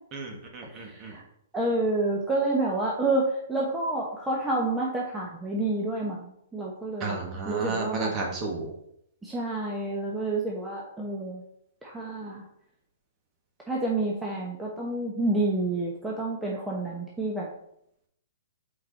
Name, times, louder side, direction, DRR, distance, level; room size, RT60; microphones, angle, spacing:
voice 1, 0.1-1.1 7.0-8.7, right 3 dB, 30° right, 1 dB, 1.7 m, -33 dB
voice 2, 0.7-1.2 1.5-8.1 9.2-11.4 11.8-12.4 13.7-17.5, right 2 dB, 5° right, -4 dB, 1.0 m, -29 dB
5.9 x 4.9 x 4.1 m, 0.74 s
hypercardioid pair, 140°, 0 cm